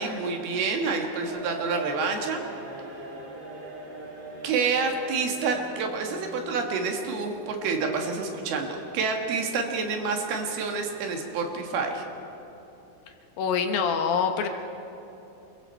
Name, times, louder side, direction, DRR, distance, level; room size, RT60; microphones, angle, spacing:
voice 1, 0.0-2.4 4.4-12.0, right 4 dB, 75° right, 3 dB, 3.5 m, -28 dB
sound 1, 1.2-12.5, right 1 dB, 55° right, 4.7 m, -43 dB
voice 2, 13.4-14.5, left 6 dB, 70° left, 5 dB, 2.6 m, -25 dB
27.5 x 22.5 x 4.5 m, 3.0 s
omnidirectional pair, 4.7 m